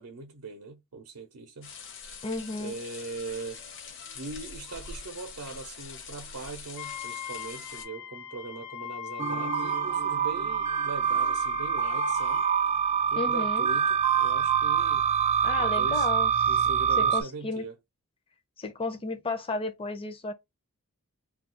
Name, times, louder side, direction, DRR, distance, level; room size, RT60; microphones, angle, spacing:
voice 1, 0.0-1.7 2.6-3.6 4.1-12.5 13.1-15.0 15.6-16.1 16.5-17.8, right 3 dB, 80° right, 0.6 m, -41 dB
sound 1, 1.6-7.9, left 5 dB, 55° left, 0.8 m, -44 dB
voice 2, 2.2-2.8 13.2-13.7 15.4-16.6 17.0-17.6 18.6-20.3, left 3 dB, 25° left, 0.5 m, -33 dB
Wind instrument woodwind instrument, 6.8-12.7, left 9 dB, 80° left, 0.4 m, -40 dB
sound 2, 9.2-17.2, right 7 dB, 30° right, 0.3 m, -25 dB
2.3 x 2.2 x 3.7 m
head